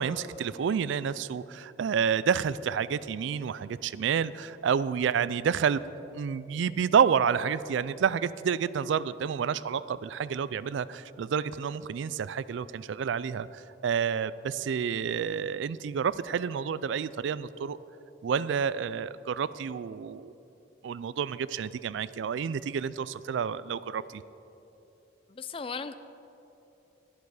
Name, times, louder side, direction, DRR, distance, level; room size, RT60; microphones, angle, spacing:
voice 1, 0.0-5.8 6.1-17.8 18.2-20.3 20.8-24.2, right 7 dB, 70° right, 17 dB, 0.3 m, -29 dB
voice 2, 25.3-25.9, left 5 dB, 25° left, 12 dB, 0.4 m, -36 dB
11.5 x 11.5 x 4.9 m, 3.0 s
head